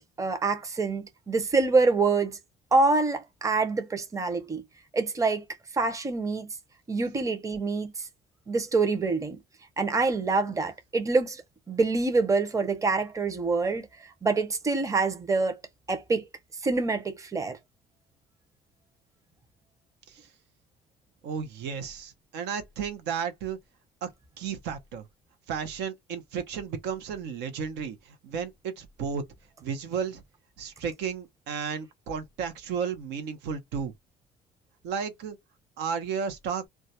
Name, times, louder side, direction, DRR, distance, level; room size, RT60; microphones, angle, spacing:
voice 1, 0.2-2.4 2.7-4.6 4.9-5.4 5.7-6.5 6.9-8.1 8.5-9.4 9.8-11.4 11.7-13.9 14.2-15.6 15.9-16.2 16.6-17.6, right 3 dB, 20° right, 0.6 m, -26 dB
voice 2, 21.2-23.6 24.0-24.1 24.4-25.1 25.5-29.2 29.6-30.2 30.6-33.9 34.8-35.4 35.8-36.7, right 6 dB, 90° right, 0.7 m, -33 dB
2.3 x 2.1 x 2.7 m
cardioid pair, 110°, 17 cm